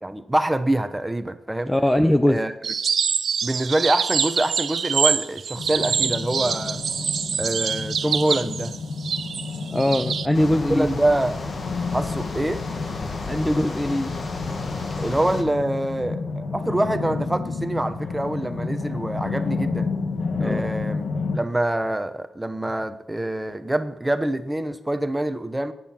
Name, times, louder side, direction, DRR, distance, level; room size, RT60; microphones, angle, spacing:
voice 1, 0.0-1.7 2.3-2.5 3.4-6.8 7.4-8.7 10.7-11.4 11.9-12.6 15.0-19.9 20.4-21.1 21.3-25.7, right 1 dB, 10° right, 10 dB, 0.9 m, -25 dB
voice 2, 1.7-2.4 9.7-10.9 13.2-14.1 20.4-20.6, left 1 dB, 5° left, 8 dB, 0.6 m, -21 dB
sound 1, 2.6-10.3, right 7 dB, 65° right, 0.7 m, -25 dB
sound 2, 5.6-21.4, left 4 dB, 75° left, 1.8 m, -30 dB
sound 3, 10.3-15.4, left 3 dB, 40° left, 1.8 m, -34 dB
23.0 x 9.3 x 5.9 m, 0.93 s
wide cardioid pair, 145°, 0 cm